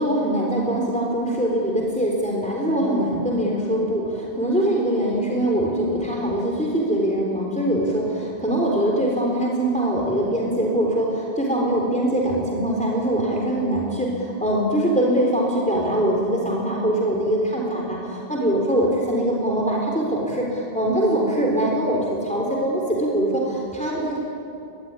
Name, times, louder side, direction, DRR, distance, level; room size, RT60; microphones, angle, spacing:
voice 1, 0.0-24.2, right 1 dB, 5° left, -2 dB, 3.9 m, -23 dB
23.5 x 22.0 x 9.8 m, 2.6 s
omnidirectional pair, 1.1 m